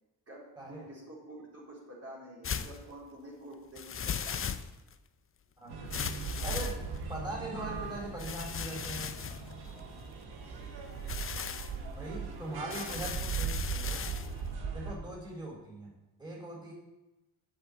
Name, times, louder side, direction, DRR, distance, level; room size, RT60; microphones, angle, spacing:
voice 1, 0.3-4.6 10.4-10.7 12.4-13.1, right 1 dB, 40° right, -6 dB, 4.3 m, -49 dB
sound 1, 2.4-2.8 3.8-4.9 5.9-7.2 8.2-10.2 10.9-11.7 12.7-14.3, left 7 dB, 35° left, 0.6 m, -37 dB
sound 2, 5.7-15.0, right 5 dB, 90° right, 1.5 m, -39 dB
voice 2, 6.4-6.8 7.1-9.2 12.0-14.0 14.7-15.9 16.2-16.7, right 1 dB, 10° right, -4 dB, 4.1 m, -41 dB
7.9 x 5.9 x 7.9 m, 1.0 s
cardioid pair, 75°, 38 cm